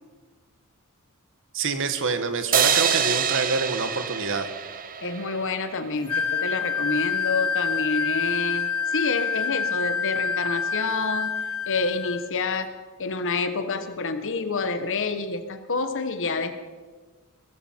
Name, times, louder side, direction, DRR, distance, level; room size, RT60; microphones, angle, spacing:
voice 1, 1.5-4.5, right 4 dB, 60° right, 9 dB, 1.3 m, -26 dB
sound 1, 2.5-5.8, right 8 dB, 40° right, 0.9 m, -25 dB
voice 2, 5.0-12.7 13.0-16.6, left 4 dB, 60° left, 9 dB, 1.2 m, -28 dB
Wind instrument woodwind instrument, 6.1-12.2, left 6 dB, 80° left, 1.1 m, -27 dB
18.0 x 14.5 x 4.5 m, 1.4 s
head